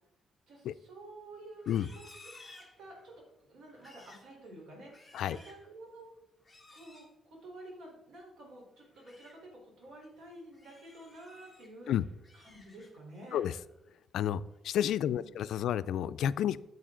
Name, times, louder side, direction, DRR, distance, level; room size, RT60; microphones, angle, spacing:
voice 1, 0.5-2.2 2.5-3.1 3.4-6.1 6.7-11.9 12.3-13.4 15.0-15.7, right 1 dB, 75° right, -1 dB, 3.8 m, -51 dB
Livestock farm animals working animals, 1.5-3.2 3.7-4.3 4.7-5.7 6.4-7.1 8.8-9.4 9.8-10.1 10.5-11.7 12.1-13.1 13.5-13.9 14.3-14.7, left 2 dB, 5° left, 1.8 m, -57 dB
voice 2, 14.1-16.6, left 10 dB, 85° left, 15 dB, 0.3 m, -30 dB
9.2 x 8.2 x 3.8 m, 0.89 s
cardioid pair, 125°, 0 cm